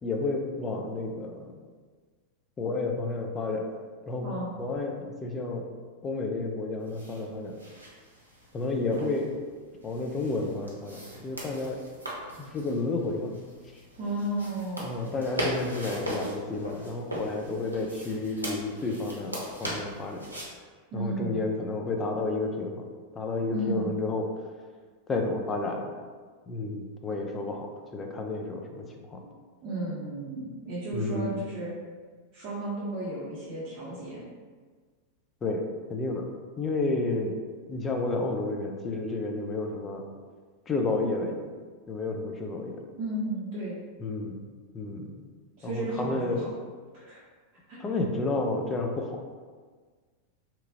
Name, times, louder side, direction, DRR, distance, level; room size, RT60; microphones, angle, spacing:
voice 1, 0.0-1.6 2.6-3.7 4.1-4.3 4.6-5.7 6.0-7.6 8.5-9.3 9.8-11.8 12.4-13.3 13.7-13.8 14.8-20.3 20.9-22.8 23.1-24.3 25.1-25.9 26.5-29.2 30.9-31.4 35.4-36.3 36.6-37.3 37.7-40.1 40.7-41.5 41.9-42.8 44.0-44.4 44.7-45.3 45.6-46.5 47.8-49.2, left 3 dB, 20° left, 2 dB, 0.4 m, -31 dB
voice 2, 4.2-4.5 14.0-14.8 20.9-21.5 23.5-23.9 29.2-29.3 29.6-31.7 32.3-34.3 43.0-43.8 45.6-46.5 46.9-47.2 47.7-47.8, right 1 dB, 40° right, -11 dB, 0.8 m, -33 dB
sound 1, 6.8-20.5, equal, 85° right, 0.6 m, -39 dB
2.9 x 2.4 x 2.6 m, 1.5 s
figure-of-eight pair, 90°, 0 cm